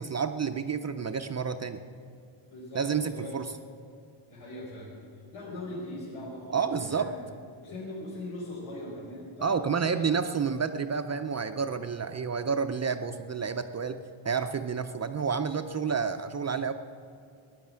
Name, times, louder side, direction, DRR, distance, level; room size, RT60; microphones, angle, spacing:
voice 1, 0.0-1.8 2.7-3.5 6.5-7.1 9.4-16.7, right 6 dB, 35° right, 8 dB, 0.4 m, -30 dB
voice 2, 2.5-3.3 4.3-4.9 5.3-7.1 7.6-10.2, left 1 dB, 85° left, -7 dB, 4.5 m, -40 dB
16.5 x 10.5 x 7.5 m, 2.4 s
wide cardioid pair, 175°, 50 cm